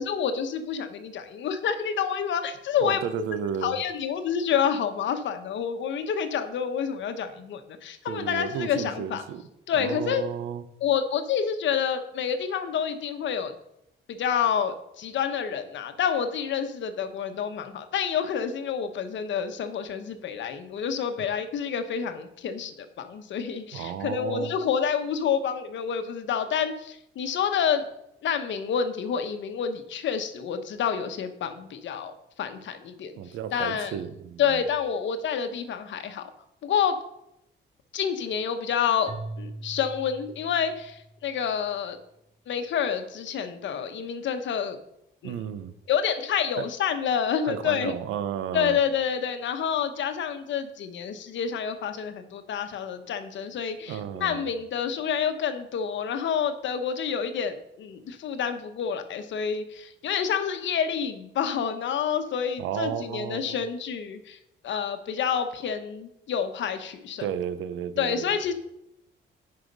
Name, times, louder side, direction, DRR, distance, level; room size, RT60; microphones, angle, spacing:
voice 1, 0.0-3.0 3.6-9.2 9.7-10.2 10.8-13.5 14.1-27.9 28.2-33.2 33.5-33.9 34.4-36.3 36.6-37.0 37.9-42.0 42.5-44.8 45.2-45.3 45.9-47.9 48.5-64.4 64.6-67.3 68.0-68.5, left 7 dB, 70° left, 8 dB, 1.1 m, -28 dB
voice 2, 2.8-3.8 8.1-9.4 9.7-10.6 23.7-24.5 33.2-34.6 45.2-45.7 46.6-46.7 47.5-48.8 53.9-54.5 62.6-63.6 67.2-68.4, right 9 dB, 90° right, 12 dB, 0.8 m, -33 dB
Keyboard (musical), 39.1-41.3, right 3 dB, 30° right, 0.7 m, -41 dB
8.1 x 5.8 x 5.3 m, 0.81 s
cardioid pair, 90°, 20 cm